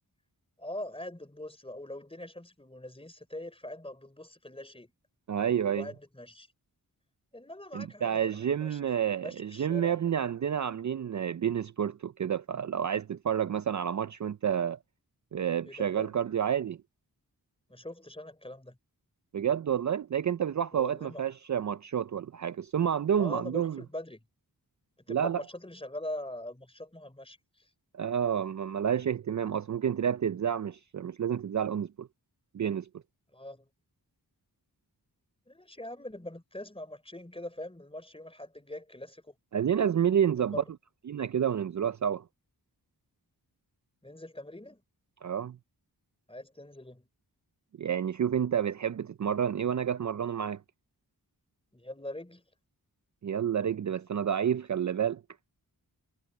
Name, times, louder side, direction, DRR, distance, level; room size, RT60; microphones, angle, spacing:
voice 1, 0.6-4.9 5.7-6.5 7.3-8.8 9.2-10.0 15.6-16.1 17.7-18.8 20.7-21.2 23.2-24.2 25.1-27.7 33.3-33.7 35.5-39.3 40.5-40.6 44.0-44.8 46.3-47.1 51.7-52.4, left 1 dB, 15° left, 4.1 m, -42 dB
voice 2, 5.3-5.9 7.7-14.8 15.3-16.8 19.3-23.8 25.1-25.4 27.9-32.1 32.5-32.9 39.5-40.6 41.1-42.2 45.2-45.6 47.8-50.6 53.2-55.2, right 8 dB, 50° right, 0.5 m, -29 dB
wide cardioid pair, 75°, 38 cm